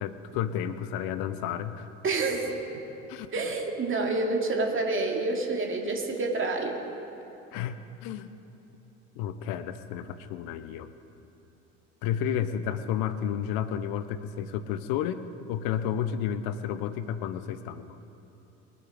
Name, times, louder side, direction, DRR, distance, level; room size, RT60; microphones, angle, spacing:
voice 1, 0.0-1.9 3.1-3.3 7.5-8.3 9.2-10.9 12.0-18.0, left 9 dB, 60° left, 12 dB, 1.0 m, -31 dB
voice 2, 2.0-2.5 3.3-6.8, right 3 dB, 30° right, 1 dB, 2.6 m, -28 dB
23.0 x 8.4 x 5.2 m, 2.9 s
hypercardioid pair, 65°, 39 cm